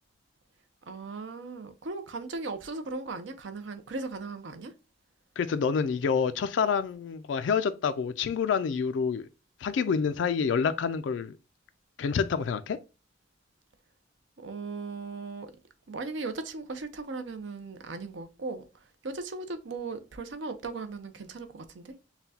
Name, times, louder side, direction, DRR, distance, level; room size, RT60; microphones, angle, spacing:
voice 1, 0.9-4.7 14.4-15.5 15.9-18.6 19.0-21.9, right 3 dB, 75° right, 0.6 m, -37 dB
voice 2, 5.4-9.3 9.6-11.3 12.0-12.8, left 6 dB, 80° left, 0.3 m, -27 dB
5.6 x 2.2 x 2.7 m
head